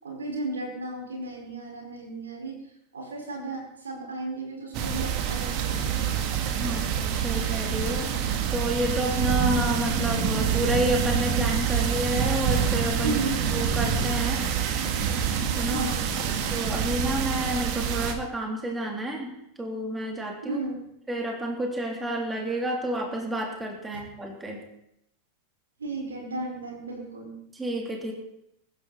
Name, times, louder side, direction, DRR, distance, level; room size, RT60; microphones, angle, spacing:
voice 1, 0.0-2.6 2.9-5.9 6.6-6.8 13.0-13.4 15.7-16.1 20.4-20.8 25.8-27.4, right 2 dB, 70° right, 0 dB, 5.1 m, -34 dB
sound 1, 4.7-18.1, right 7 dB, 45° right, 2.1 m, -26 dB
voice 2, 6.6-8.2 8.5-13.2 13.5-14.6 15.5-15.8 16.5-20.6 21.1-24.6 27.5-28.1, right 1 dB, 10° right, 0 dB, 3.4 m, -30 dB
23.5 x 12.0 x 4.3 m, 0.79 s
figure-of-eight pair, 90°, 0 cm